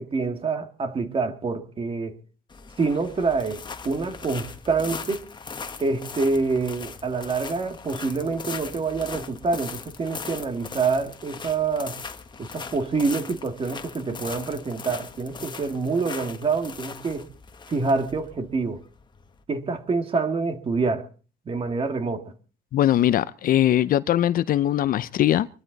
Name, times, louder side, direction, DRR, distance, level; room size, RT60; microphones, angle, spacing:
voice 1, 0.0-2.2 2.8-5.3 5.8-12.0 12.4-17.3 17.7-18.8 19.5-21.1 21.5-22.3, right 4 dB, 35° right, 2.1 m, -26 dB
sound 1, 2.5-19.4, left 5 dB, 25° left, 1.5 m, -39 dB
voice 2, 22.7-25.5, left 12 dB, 55° left, 0.7 m, -21 dB
24.0 x 12.0 x 4.1 m
cardioid pair, 110°, 17 cm